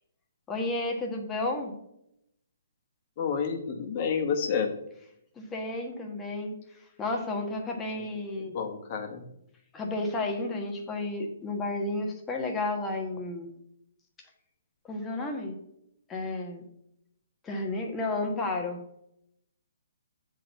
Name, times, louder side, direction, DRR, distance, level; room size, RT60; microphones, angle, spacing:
voice 1, 0.5-1.7 5.4-6.5 7.0-8.5 9.7-13.5 14.9-15.6 16.1-16.6 17.4-18.8, left 2 dB, 15° left, 1 dB, 1.3 m, -32 dB
voice 2, 3.2-4.7 8.0-8.1 8.5-9.2, left 6 dB, 40° left, 4 dB, 1.3 m, -29 dB
7.5 x 3.9 x 6.5 m, 0.78 s
hypercardioid pair, 145°, 0 cm